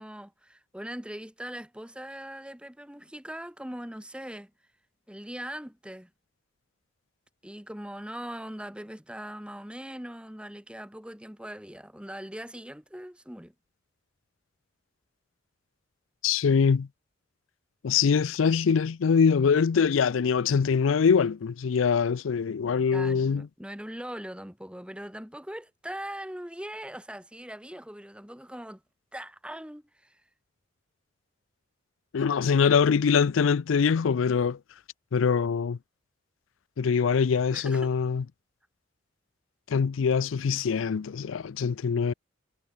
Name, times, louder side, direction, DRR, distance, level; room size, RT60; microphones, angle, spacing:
voice 1, 0.0-4.5 5.1-6.1 7.4-13.5 22.9-28.8 29.1-30.2 37.5-37.9, right 1 dB, 5° right, 2.1 m, -40 dB
voice 2, 16.2-16.9 17.8-23.5 32.1-34.6 35.1-35.8 36.8-38.2 39.7-42.1, left 6 dB, 85° left, 0.4 m, -23 dB
head